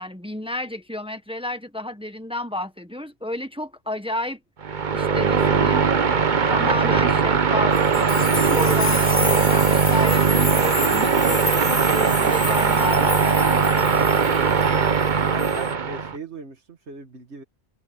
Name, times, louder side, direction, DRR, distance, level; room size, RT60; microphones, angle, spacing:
voice 1, 0.0-4.4 4.9-5.8 6.5-13.5, left 1 dB, 5° right, 1.4 m, -31 dB
sound 1, 4.6-16.2, right 5 dB, 45° right, 1.1 m, -20 dB
sound 2, 7.7-15.1 15.4-15.7, left 3 dB, 50° left, 3.4 m, -30 dB
voice 2, 14.4-17.4, right 4 dB, 80° right, 2.0 m, -39 dB
omnidirectional pair, 1.1 m